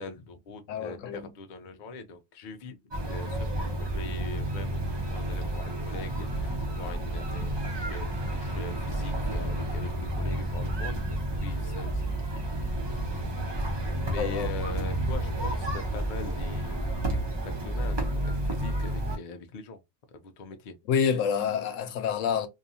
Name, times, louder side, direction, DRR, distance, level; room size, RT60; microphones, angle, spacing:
voice 1, 0.0-12.4 13.7-19.8 20.1-20.8, left 3 dB, 60° left, 0.5 m, -42 dB
voice 2, 0.7-1.3 14.2-14.6 20.9-22.5, left 7 dB, 85° left, 1.0 m, -28 dB
sound 1, 2.9-19.2, right 1 dB, 25° right, 0.6 m, -31 dB
2.7 x 2.3 x 2.6 m
omnidirectional pair, 1.3 m